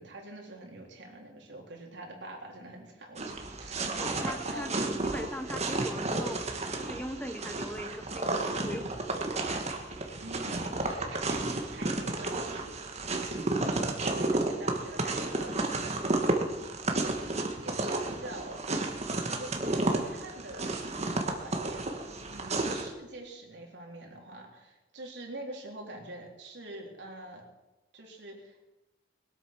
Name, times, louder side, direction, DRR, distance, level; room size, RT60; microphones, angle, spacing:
voice 1, 0.0-3.7 4.5-4.7 10.2-12.7 13.6-15.6 16.1-18.6 19.1-20.7 21.0-21.9 22.3-27.4 27.9-28.6, right 1 dB, 75° right, 0 dB, 3.6 m, -45 dB
sound 1, 3.2-22.9, right 2 dB, 40° right, 1.7 m, -32 dB
voice 2, 4.0-4.7 5.0-6.4 6.8-9.5, equal, 10° left, 7 dB, 1.0 m, -40 dB
21.5 x 8.3 x 6.1 m, 1.0 s
head